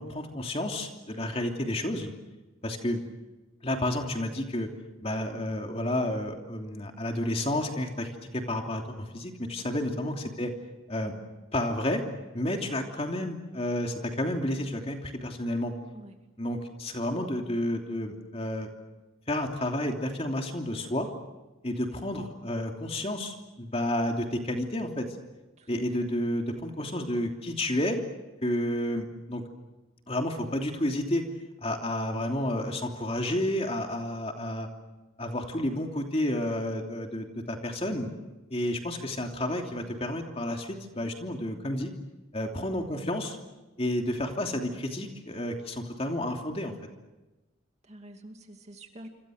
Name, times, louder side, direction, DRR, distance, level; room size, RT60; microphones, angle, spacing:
voice 1, 0.0-2.1 2.6-3.0 3.6-4.7 5.0-10.5 10.9-11.1 11.5-12.0 12.3-15.7 16.4-18.7 19.3-21.1 21.6-25.1 25.7-28.0 28.4-29.4 30.1-31.2 31.6-34.7 35.2-38.1 38.5-41.9 42.3-43.4 43.8-46.7, left 1 dB, 30° left, 3 dB, 3.0 m, -31 dB
voice 2, 47.9-49.1, right 1 dB, 30° right, 5 dB, 2.5 m, -48 dB
28.0 x 26.5 x 6.5 m, 1.1 s
head